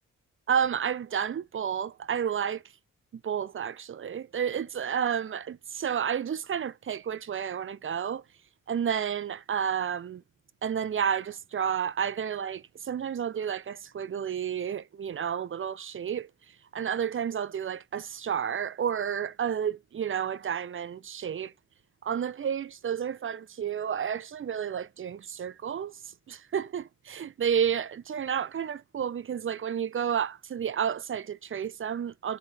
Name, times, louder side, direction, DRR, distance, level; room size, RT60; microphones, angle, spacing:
voice 1, 0.5-2.6 3.1-8.2 8.7-10.2 10.6-16.3 16.7-21.5 22.0-32.4, right 8 dB, 35° right, 0.5 m, -31 dB
3.8 x 3.8 x 3.4 m
supercardioid pair, 45°, 34 cm